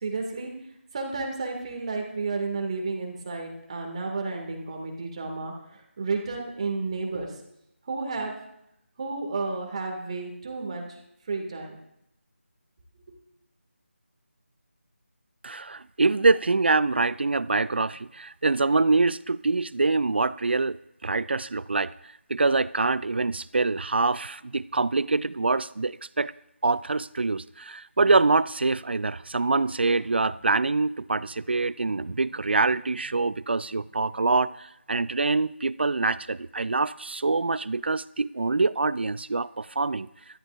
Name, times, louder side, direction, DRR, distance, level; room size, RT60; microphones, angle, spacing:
voice 1, 0.0-0.5 0.9-7.3 7.9-8.3 9.0-11.0 11.3-11.8, right 3 dB, 30° right, 1 dB, 2.2 m, -32 dB
voice 2, 15.4-21.9 22.3-26.3 26.6-40.1, right 3 dB, 55° right, 19 dB, 0.4 m, -25 dB
17.5 x 14.0 x 2.5 m, 0.81 s
figure-of-eight pair, 160°, 7 cm